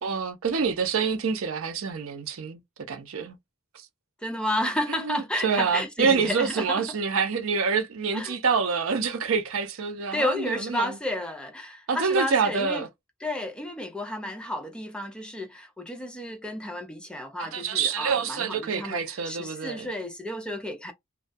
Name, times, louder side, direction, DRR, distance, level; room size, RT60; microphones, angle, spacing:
voice 1, 0.0-2.6 2.9-3.4 3.7-3.9 4.9-10.9 11.9-12.9 17.4-19.9, right 5 dB, 80° right, 0.6 m, -27 dB
voice 2, 4.2-6.9 8.1-8.4 10.1-12.9 13.2-20.9, left 1 dB, 5° left, 0.5 m, -32 dB
2.3 x 2.2 x 2.5 m
head